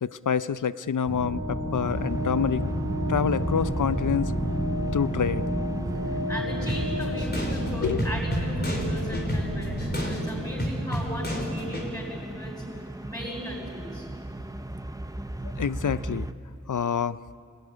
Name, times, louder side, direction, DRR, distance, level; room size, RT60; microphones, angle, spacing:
voice 1, 0.0-2.6 3.1-4.3 4.9-5.5 7.8-8.0 15.4-16.3 16.7-17.2, left 7 dB, 80° left, 16 dB, 0.6 m, -27 dB
sound 1, 1.0-10.2, equal, 75° right, 4.9 m, -30 dB
sound 2, 1.9-16.3, right 1 dB, 10° right, 0.8 m, -37 dB
voice 2, 6.1-12.6 13.0-14.1, equal, 10° left, -5 dB, 7.5 m, -36 dB
sound 3, 6.7-11.9, equal, 35° left, 4.1 m, -32 dB
25.0 x 18.5 x 9.8 m, 2.6 s
wide cardioid pair, 60°, 30 cm